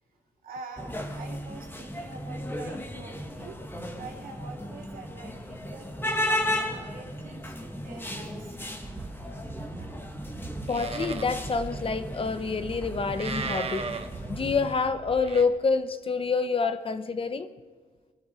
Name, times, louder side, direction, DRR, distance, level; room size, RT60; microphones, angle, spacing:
voice 1, 0.4-3.6 4.0-8.6 16.4-16.5, right 3 dB, 75° right, 1 dB, 2.8 m, -46 dB
sound 1, 0.8-14.7, left 1 dB, 15° left, 1.9 m, -35 dB
Livestock farm animals working animals, 8.8-15.4, right 4 dB, 45° right, 1.2 m, -38 dB
voice 2, 10.7-13.8 14.3-17.5, left 4 dB, 40° left, 11 dB, 0.9 m, -27 dB
23.0 x 12.0 x 4.5 m, 1.4 s
cardioid pair, 100°, 15 cm